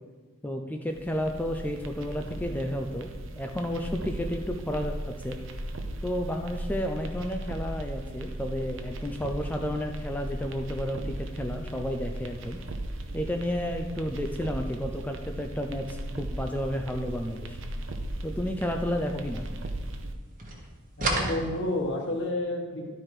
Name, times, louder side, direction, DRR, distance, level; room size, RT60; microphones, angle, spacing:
voice 1, 0.4-5.4 6.0-12.6 13.1-17.6 18.2-19.5, equal, 10° left, 3 dB, 0.3 m, -32 dB
sound 1, 0.9-20.1, right 1 dB, 65° right, 0.7 m, -37 dB
sound 2, 17.9-20.1 20.4-22.2, right 2 dB, 40° right, 1.2 m, -34 dB
voice 2, 21.0-22.9, left 1 dB, 55° left, 1 dB, 1.4 m, -30 dB
11.5 x 4.5 x 4.9 m, 1.3 s
head